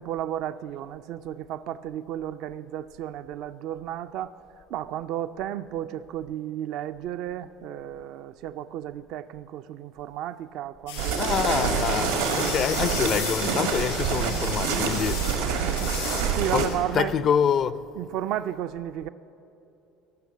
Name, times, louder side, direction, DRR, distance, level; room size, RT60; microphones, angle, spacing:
voice 1, 0.0-4.3 4.7-11.3 12.4-12.5 15.4-15.9 16.3-17.2 18.0-19.1, right 11 dB, 65° right, 0.4 m, -33 dB
sound 1, 10.9-16.8, left 6 dB, 80° left, 3.4 m, -36 dB
sound 2, 11.0-16.7, right 6 dB, 85° right, 1.5 m, -26 dB
voice 2, 11.2-15.6 16.5-17.8, left 8 dB, 45° left, 0.5 m, -26 dB
16.5 x 6.4 x 8.4 m
hypercardioid pair, 70°, 0 cm